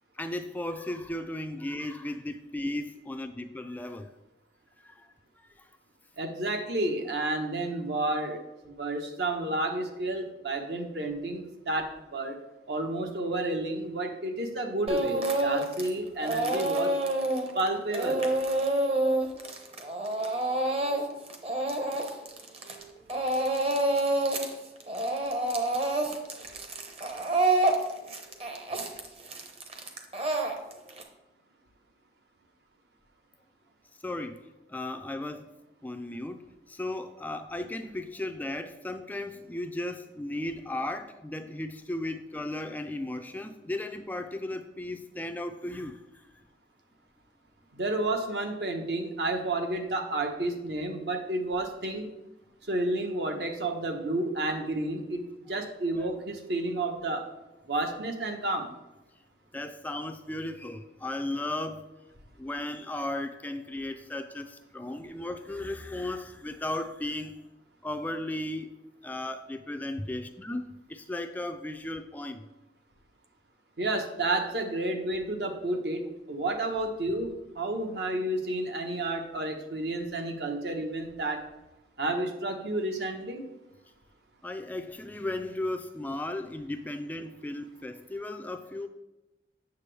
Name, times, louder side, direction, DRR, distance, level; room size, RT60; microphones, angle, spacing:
voice 1, 0.2-4.1 4.8-5.1 34.0-34.4 34.7-35.5 35.8-46.2 55.9-56.1 59.5-61.8 62.4-67.4 67.8-68.7 69.0-72.5 84.4-88.9, left 1 dB, 10° left, 7 dB, 0.3 m, -35 dB
voice 2, 6.2-8.4 8.6-12.4 12.7-16.9 17.5-18.3 47.7-52.1 52.7-55.2 55.5-57.3 57.7-58.7 73.8-76.0 76.3-77.3 77.5-81.4 82.0-83.5, right 2 dB, 65° right, 4 dB, 1.1 m, -31 dB
Speech / Crying sobbing, 14.9-15.9 16.2-22.8 23.1-24.5 24.8-31.0, right 2 dB, 35° right, 0.9 m, -28 dB
8.3 x 6.8 x 3.3 m, 1.0 s
head